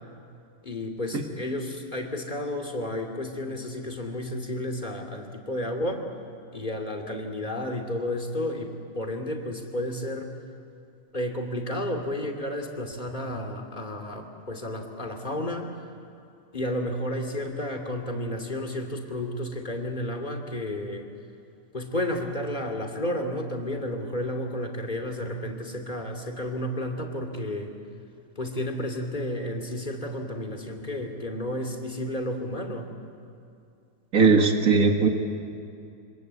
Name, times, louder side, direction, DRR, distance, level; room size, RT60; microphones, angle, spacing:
voice 1, 0.6-6.0 6.5-10.3 11.1-15.7 16.5-21.1 21.7-27.7 28.4-32.9, left 1 dB, 25° left, 3 dB, 2.9 m, -32 dB
voice 2, 34.1-35.1, right 4 dB, 60° right, 3 dB, 2.4 m, -19 dB
27.5 x 25.5 x 8.2 m, 2.5 s
omnidirectional pair, 1.7 m